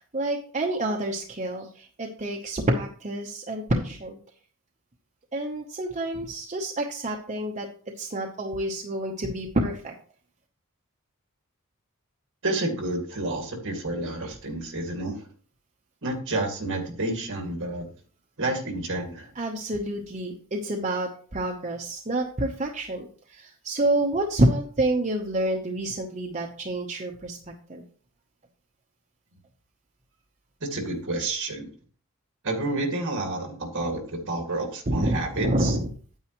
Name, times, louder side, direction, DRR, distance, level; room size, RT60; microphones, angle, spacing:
voice 1, 0.0-4.2 5.3-7.7 8.0-9.9 14.2-14.3 19.4-27.4 27.7-27.8 34.9-35.9, right 1 dB, 35° right, 0 dB, 0.9 m, -28 dB
voice 2, 12.4-15.2 16.0-17.9 18.4-19.3 30.6-31.7 32.4-35.8, right 2 dB, 60° right, 3 dB, 2.3 m, -29 dB
9.2 x 8.9 x 3.1 m, 0.43 s
head